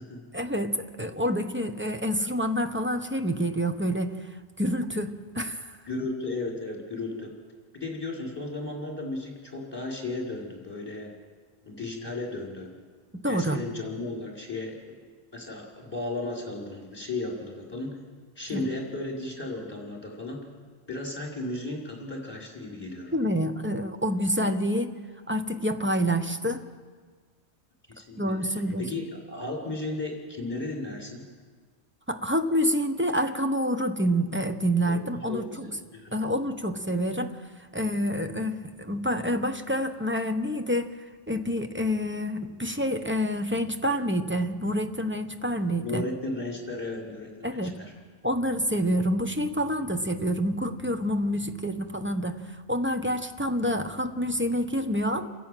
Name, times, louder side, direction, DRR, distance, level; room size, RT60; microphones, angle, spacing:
voice 1, 0.3-4.2 4.6-5.8 13.1-13.6 18.5-18.6 23.1-24.9 25.3-26.6 28.2-28.9 32.1-35.7 36.1-37.3 37.7-40.9 41.3-46.0 47.4-47.7 48.2-55.3, equal, 10° right, 7 dB, 0.9 m, -27 dB
voice 2, 5.9-7.3 7.7-11.1 11.6-12.7 13.2-14.8 15.3-18.0 18.4-20.4 20.9-23.1 27.9-28.3 28.8-31.2 34.9-35.0 35.3-36.1 45.8-47.9, left 2 dB, 20° left, -2 dB, 4.6 m, -35 dB
29.0 x 11.0 x 9.1 m, 1.5 s
omnidirectional pair, 1.2 m